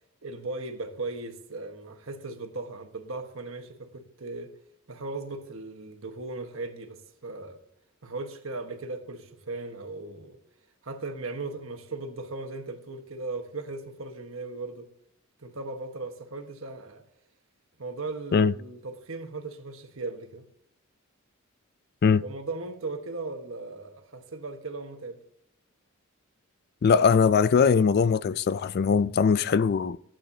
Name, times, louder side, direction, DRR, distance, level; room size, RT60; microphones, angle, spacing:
voice 1, 0.2-4.5 4.9-7.6 8.0-10.4 10.8-14.9 15.4-17.0 17.8-20.5 22.2-25.2, right 3 dB, 65° right, 1.4 m, -37 dB
voice 2, 26.8-30.0, left 6 dB, 50° left, 0.3 m, -21 dB
15.0 x 9.0 x 2.8 m
head